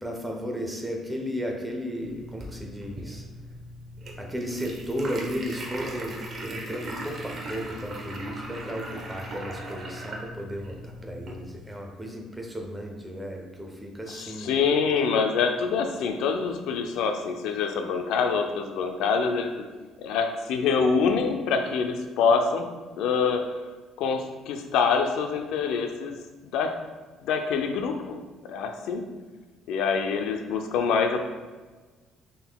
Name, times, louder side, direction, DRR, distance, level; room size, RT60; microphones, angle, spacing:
voice 1, 0.0-3.2 4.2-14.5, equal, 10° right, 1 dB, 0.8 m, -34 dB
sound 1, 2.0-11.5, right 1 dB, 40° right, 0.9 m, -38 dB
voice 2, 14.2-19.6 20.0-22.7 23.0-23.4 24.0-26.2 26.5-26.7 27.2-29.1 29.7-31.2, left 5 dB, 80° left, 5 dB, 0.5 m, -25 dB
5.9 x 3.8 x 2.3 m, 1.3 s
cardioid pair, 110°, 0 cm